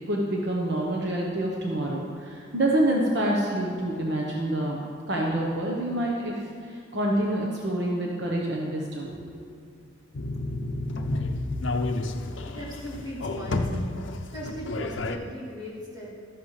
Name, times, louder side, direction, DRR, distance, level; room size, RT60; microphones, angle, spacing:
voice 1, 0.1-4.8 5.1-6.3 6.6-9.4, right 1 dB, 60° right, -2 dB, 1.1 m, -27 dB
sound 1, 10.1-15.2, left 2 dB, 75° left, 0.6 m, -30 dB
voice 2, 12.1-13.9 14.3-16.2, equal, 20° right, -8 dB, 3.1 m, -38 dB
13.5 x 11.0 x 3.3 m, 2.3 s
head